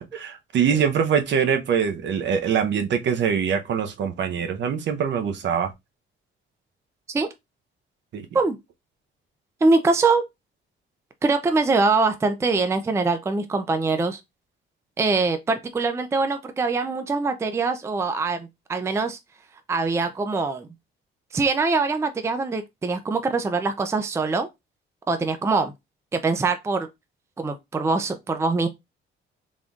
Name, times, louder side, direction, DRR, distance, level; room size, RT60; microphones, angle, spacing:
voice 1, 0.5-5.7 8.1-8.3, right 7 dB, 60° right, 0.7 m, -23 dB
voice 2, 9.6-10.3 11.2-14.2 15.0-19.2 19.7-20.7 21.3-24.5 25.1-25.7 26.1-26.9 27.4-28.7, right 3 dB, 15° right, 0.4 m, -23 dB
3.8 x 3.6 x 2.3 m
cardioid pair, 125°, 21 cm